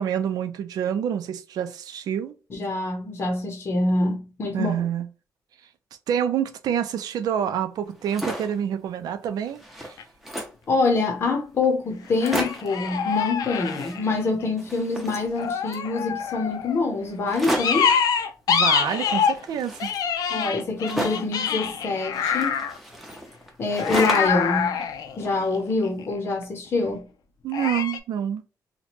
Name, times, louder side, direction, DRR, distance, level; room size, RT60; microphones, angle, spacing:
voice 1, 0.0-2.4 4.5-5.1 6.1-10.0 18.5-19.9 27.4-28.4, right 9 dB, 85° right, 0.5 m, -27 dB
voice 2, 2.5-4.7 10.7-17.9 20.3-22.6 23.6-24.8 25.2-27.0, left 3 dB, 40° left, 0.7 m, -25 dB
sound 1, 7.9-8.6 9.1-9.2 9.4-10.7 11.3-11.4 11.6-11.7 12.0-12.8 13.5-14.3 14.6-15.9 17.3-17.9 18.9-21.4 22.1-24.5 24.8-25.7, equal, ahead, 0.7 m, -33 dB
sound 2, 10.0-10.1 12.2-14.5 15.4-16.8 17.6-19.4 19.8-22.8 23.8-26.0 27.5-28.0, left 7 dB, 80° left, 0.5 m, -25 dB
3.0 x 2.2 x 4.2 m
wide cardioid pair, 160°, 6 cm